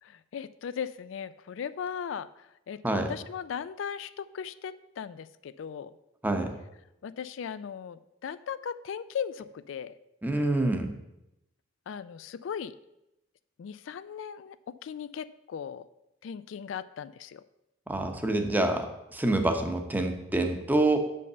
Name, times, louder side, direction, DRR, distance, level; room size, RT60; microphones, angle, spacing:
voice 1, 0.0-5.9 7.0-9.9 11.9-12.7 13.6-15.9 16.2-17.4, left 7 dB, 75° left, 14 dB, 0.3 m, -38 dB
voice 2, 10.2-10.9 17.9-21.0, right 2 dB, 10° right, 5 dB, 0.8 m, -27 dB
6.5 x 5.4 x 6.6 m, 0.88 s
head